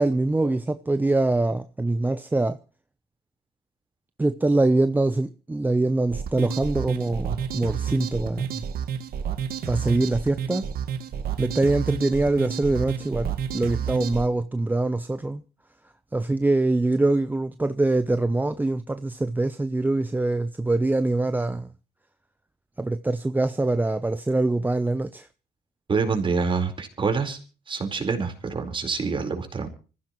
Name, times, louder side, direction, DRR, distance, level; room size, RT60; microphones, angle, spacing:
voice 1, 0.0-2.6 4.2-8.6 9.7-10.6 11.4-15.4 16.1-21.7 22.8-25.3, right 2 dB, 10° right, 0.7 m, -24 dB
sound 1, 6.1-14.3, right 8 dB, 65° right, 1.9 m, -30 dB
voice 2, 25.9-27.4 27.7-29.7, right 5 dB, 30° right, 4.4 m, -26 dB
25.5 x 15.0 x 3.1 m
cardioid pair, 110°, 17 cm